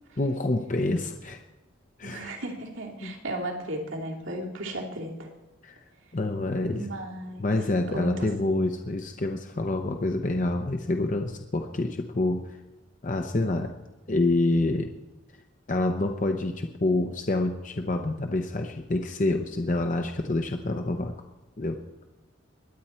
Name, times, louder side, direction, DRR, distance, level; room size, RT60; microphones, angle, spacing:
voice 1, 0.2-1.4 2.0-2.3 3.0-3.1 5.6-5.8 6.1-6.9 7.4-12.6 13.0-13.7 14.1-14.9 15.7-21.1 21.6-21.8, left 2 dB, 40° left, 4 dB, 0.7 m, -27 dB
voice 2, 2.0-5.3 6.7-7.5 7.9-8.3, right 1 dB, 85° right, -1 dB, 2.6 m, -35 dB
22.0 x 9.4 x 4.4 m, 1.1 s
head